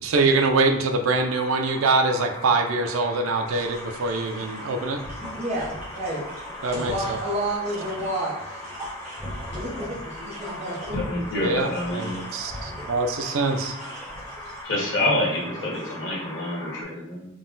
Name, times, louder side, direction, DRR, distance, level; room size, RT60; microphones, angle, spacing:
voice 1, 0.0-5.0 6.6-7.2 11.4-13.7, right 3 dB, 80° right, 5 dB, 0.4 m, -24 dB
sound 1, 1.2-16.8, left 1 dB, 15° left, 0.5 m, -40 dB
sound 2, 3.5-14.6, equal, 10° right, 1.2 m, -39 dB
voice 2, 5.3-6.2 6.7-8.6 9.6-11.0 15.6-15.7, right 1 dB, 30° right, -7 dB, 0.7 m, -30 dB
voice 3, 10.9-12.2 14.6-17.3, left 1 dB, 60° left, -4 dB, 1.3 m, -27 dB
3.9 x 2.1 x 3.8 m, 0.88 s
head